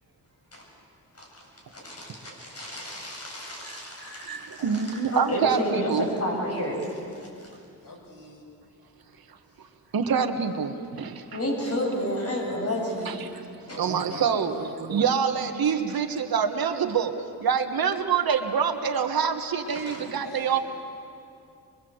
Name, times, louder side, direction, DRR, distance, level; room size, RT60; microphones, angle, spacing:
voice 1, 1.7-4.7 5.1-7.3 11.3-13.2 13.7-13.8 19.9-20.0, equal, 40° left, -1 dB, 7.9 m, -31 dB
voice 2, 4.2-6.1 9.9-11.2 13.0-13.5 13.8-17.1 17.4-20.6, right 6 dB, 70° right, 7 dB, 1.6 m, -26 dB
voice 3, 7.8-8.5 13.6-14.9 17.7-17.8 19.6-20.6, left 3 dB, 60° left, 0 dB, 5.9 m, -43 dB
24.5 x 23.5 x 8.0 m, 2.5 s
cardioid pair, 100°, 37 cm